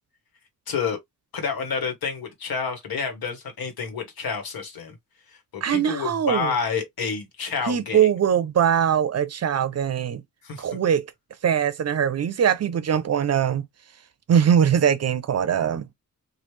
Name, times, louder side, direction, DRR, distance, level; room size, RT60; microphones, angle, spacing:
voice 1, 0.7-1.0 1.3-4.9 5.5-8.1 10.4-10.6, left 5 dB, 80° left, 1.3 m, -29 dB
voice 2, 5.6-6.5 7.7-10.2 10.6-11.1 11.4-13.6 14.3-15.9, right 8 dB, 45° right, 0.5 m, -21 dB
3.1 x 2.4 x 3.2 m
wide cardioid pair, 135°, 35 cm